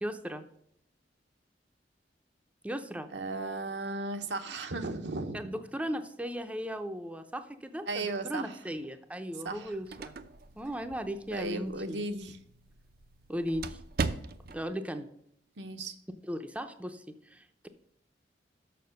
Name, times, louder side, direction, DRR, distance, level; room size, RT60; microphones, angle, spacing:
voice 1, 0.0-0.4 2.6-3.1 5.3-10.1 10.6-12.0 13.3-13.8 14.5-15.1 16.2-17.7, equal, 10° right, 7 dB, 0.6 m, -37 dB
voice 2, 3.1-5.4 7.9-8.5 9.4-9.7 11.3-12.4 15.6-15.9, right 2 dB, 80° right, 6 dB, 0.9 m, -35 dB
sound 1, 9.5-14.7, right 4 dB, 60° right, 0.6 m, -40 dB
6.9 x 6.1 x 6.5 m, 0.72 s
head